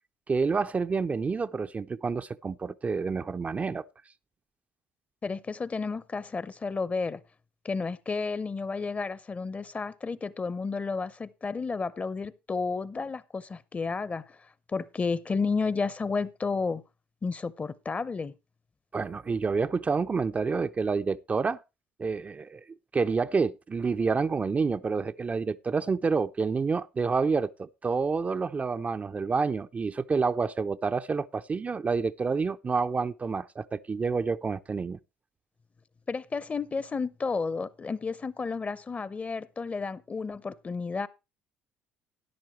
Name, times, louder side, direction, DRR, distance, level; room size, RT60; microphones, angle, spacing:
voice 1, 0.3-3.8 18.9-21.6 22.0-22.6 22.9-35.0, right 4 dB, 30° right, 0.5 m, -28 dB
voice 2, 5.2-7.2 7.6-14.2 14.7-16.8 17.2-18.3 36.1-41.1, left 4 dB, 30° left, 0.7 m, -32 dB
13.0 x 10.5 x 3.2 m
hypercardioid pair, 60°, 5 cm